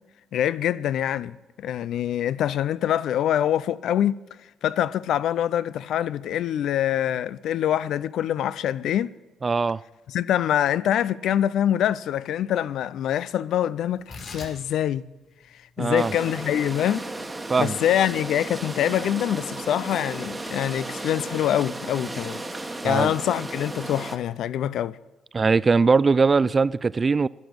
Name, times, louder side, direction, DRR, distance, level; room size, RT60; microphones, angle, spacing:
voice 1, 0.3-4.2 4.6-9.1 10.1-15.0 15.8-17.1 17.6-22.4 22.8-25.0, left 10 dB, 75° left, 0.4 m, -25 dB
voice 2, 9.4-9.8 15.8-16.1 17.5-17.8 22.8-23.1 25.3-27.3, right 4 dB, 35° right, 0.3 m, -20 dB
Tearing, 13.9-20.6, left 3 dB, 50° left, 4.2 m, -47 dB
sound 1, 16.0-24.2, right 2 dB, 15° right, 1.2 m, -34 dB
12.0 x 10.5 x 6.2 m
cardioid pair, 90°, 0 cm